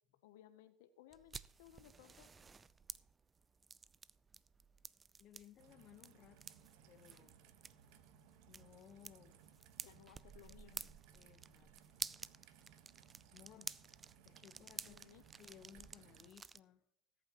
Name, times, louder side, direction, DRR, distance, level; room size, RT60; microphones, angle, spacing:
voice 1, 0.2-2.5 9.8-11.0 14.8-15.2, left 12 dB, 75° left, 0.8 m, -62 dB
sound 1, 1.1-16.6, right 5 dB, 20° right, 0.4 m, -52 dB
voice 2, 5.2-7.4 8.5-9.5 9.9-10.1 10.5-10.9 11.1-11.7 12.4-12.7 13.3-13.8 14.2-15.1 15.4-16.8, left 10 dB, 45° left, 1.1 m, -62 dB
Raindrop / Trickle dribble, 5.6-16.3, right 9 dB, 65° right, 1.2 m, -64 dB
20.0 x 8.8 x 3.0 m
supercardioid pair, 105°, 0 cm